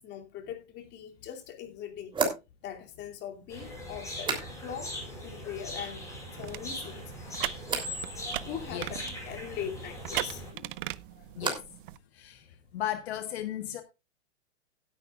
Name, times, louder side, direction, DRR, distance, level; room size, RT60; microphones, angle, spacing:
voice 1, 0.0-2.1 2.6-4.3 4.6-7.1 8.4-10.5 11.2-11.3, left 9 dB, 30° left, 2.7 m, -41 dB
sound 1, 0.9-1.0 2.1-5.0 5.2-5.8 6.2-6.8 7.6-8.0 10.4-11.9 12.1-12.7, right 4 dB, 15° right, 3.2 m, -37 dB
sound 2, 3.5-10.5, left 1 dB, 10° left, 7.3 m, -40 dB
sound 3, 6.4-12.0, right 17 dB, 50° right, 0.6 m, -39 dB
voice 2, 12.1-12.5 12.7-13.8, left 12 dB, 60° left, 1.4 m, -35 dB
16.0 x 10.5 x 2.4 m
hypercardioid pair, 135°, 35 cm